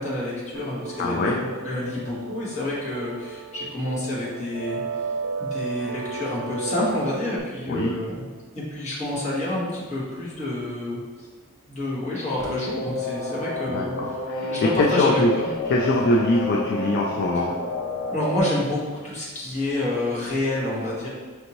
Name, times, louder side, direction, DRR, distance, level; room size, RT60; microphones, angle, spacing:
voice 1, 0.0-4.8 5.4-8.3 8.5-11.3 11.7-14.1 14.4-15.5 18.1-21.1, left 1 dB, 35° left, -8 dB, 1.5 m, -28 dB
sound 1, 0.5-7.4, right 4 dB, 85° right, 0.4 m, -34 dB
voice 2, 1.0-1.4 7.7-8.0 13.7-14.5 14.8-15.3 15.7-17.5, left 2 dB, 50° left, -1 dB, 0.4 m, -23 dB
sound 2, 12.4-18.4, left 2 dB, 75° left, 1.0 m, -30 dB
5.5 x 2.6 x 2.9 m, 1.4 s
head